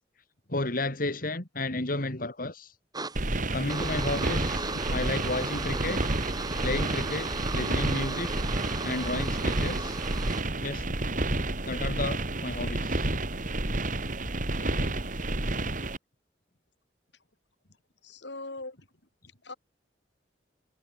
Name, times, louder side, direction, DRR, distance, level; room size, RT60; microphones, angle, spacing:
voice 1, 0.5-2.7 3.5-6.1 6.6-8.4 8.8-10.0 10.6-10.8 11.6-13.1, left 2 dB, 50° left, 3.0 m, -32 dB
sound 1, 2.9-10.4, right 3 dB, 25° right, 6.0 m, -36 dB
sound 2, 3.2-16.0, right 2 dB, 50° right, 2.7 m, -30 dB
voice 2, 14.3-14.9 18.0-18.9 19.4-19.5, left 2 dB, 80° left, 4.9 m, -42 dB
head